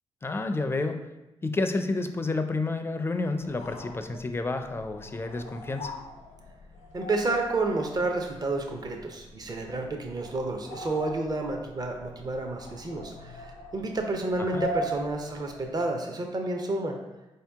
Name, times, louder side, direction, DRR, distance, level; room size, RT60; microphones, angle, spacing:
voice 1, 0.2-1.0 1.4-5.9 14.4-14.7, left 3 dB, 20° left, 7 dB, 0.4 m, -30 dB
sound 1, 3.4-15.9, equal, 85° left, 0.5 m, -41 dB
voice 2, 6.9-16.9, right 2 dB, 35° right, 3 dB, 0.6 m, -30 dB
4.4 x 2.8 x 3.4 m, 1.1 s
cardioid pair, 65°, 11 cm